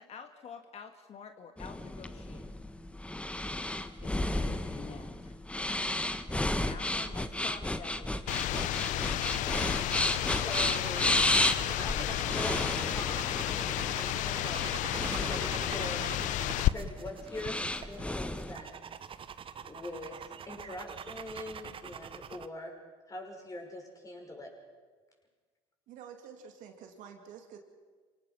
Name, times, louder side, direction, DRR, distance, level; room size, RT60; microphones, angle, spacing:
voice 1, 0.0-2.5 4.0-5.3 6.5-8.5 9.9-10.4, left 6 dB, 50° left, 6 dB, 1.7 m, -48 dB
sound 1, 1.6-18.5, left 1 dB, 10° left, 1.3 m, -33 dB
sound 2, 8.3-16.7, left 15 dB, 65° left, 0.6 m, -32 dB
sound 3, 8.7-22.5, right 7 dB, 40° right, 1.0 m, -45 dB
voice 2, 10.4-11.2 11.8-13.4 13.7-14.8 15.2-16.2 16.7-18.9 19.6-22.7 23.1-24.5, left 2 dB, 25° left, 1 dB, 6.3 m, -43 dB
voice 3, 25.9-27.6, right 7 dB, 70° right, 4 dB, 2.9 m, -49 dB
26.0 x 18.0 x 6.0 m, 1.5 s
supercardioid pair, 80°, 14 cm